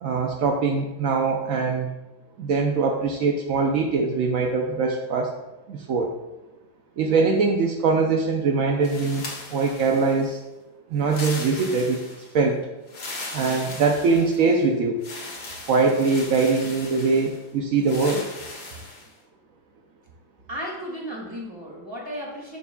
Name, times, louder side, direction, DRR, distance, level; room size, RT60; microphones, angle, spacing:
voice 1, 0.0-1.9 2.4-5.4 5.7-6.1 7.0-10.4 10.9-12.0 12.3-12.6 13.3-15.0 15.7-18.3, right 4 dB, 70° right, 1 dB, 0.8 m, -22 dB
sound 1, 8.8-10.3 11.0-12.3 12.9-14.6 15.0-17.4 17.8-19.1, left 2 dB, 65° left, 2.2 m, -38 dB
voice 2, 20.5-22.6, equal, 15° right, -3 dB, 2.0 m, -34 dB
10.5 x 6.8 x 2.3 m, 1.0 s
omnidirectional pair, 2.1 m